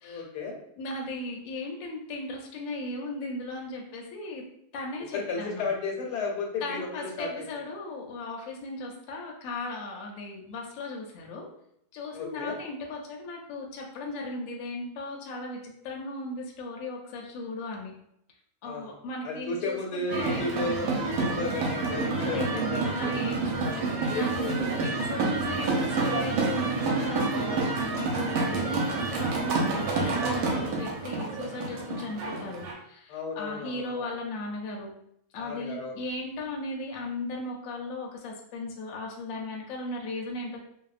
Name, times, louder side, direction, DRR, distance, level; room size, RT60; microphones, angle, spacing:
voice 1, 0.0-0.6 5.1-7.4 12.1-12.6 18.6-18.9 19.2-23.2 24.1-24.8 30.5-30.7 33.1-34.0 35.4-35.9, left 3 dB, 85° left, 0 dB, 1.2 m, -33 dB
voice 2, 0.8-4.4 4.7-5.7 6.6-11.5 11.9-17.9 18.6-20.4 22.2-34.9 35.3-40.6, left 2 dB, 70° left, 0 dB, 0.9 m, -37 dB
sound 1, 20.1-32.7, right 3 dB, 70° right, 1.0 m, -28 dB
2.7 x 2.1 x 2.4 m, 0.72 s
omnidirectional pair, 1.7 m